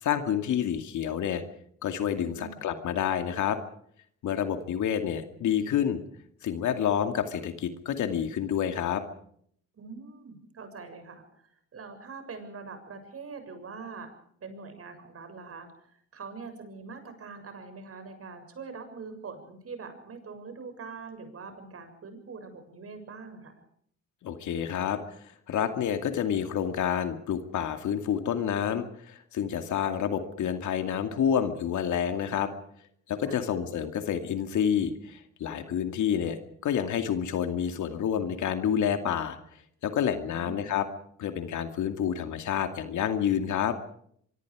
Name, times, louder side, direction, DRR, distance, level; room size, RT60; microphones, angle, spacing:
voice 1, 0.0-1.4 1.8-3.6 4.2-6.0 6.4-9.0 24.2-25.0 25.5-32.5 33.1-36.4 36.6-39.4 39.8-40.9 41.2-43.8, left 9 dB, 75° left, 7 dB, 2.5 m, -28 dB
voice 2, 2.3-2.6 9.7-14.1 14.4-23.6 33.2-33.4 40.2-40.7, right 4 dB, 50° right, 8 dB, 7.0 m, -43 dB
25.0 x 24.0 x 5.0 m, 0.64 s
cardioid pair, 90°, 30 cm